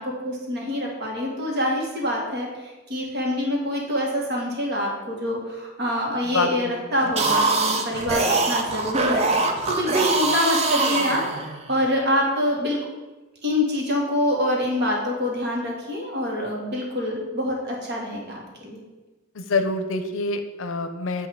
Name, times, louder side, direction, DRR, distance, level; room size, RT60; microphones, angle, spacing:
voice 1, 0.0-9.2 9.7-11.2 11.7-12.8 13.4-18.8, left 1 dB, 55° right, -1 dB, 1.5 m, -26 dB
voice 2, 6.2-6.7 7.0-7.1 19.3-21.3, left 3 dB, 70° left, 8 dB, 0.6 m, -26 dB
sound 1, 7.0-11.8, right 3 dB, 30° right, 0.6 m, -23 dB
8.1 x 2.8 x 5.8 m, 1.2 s
head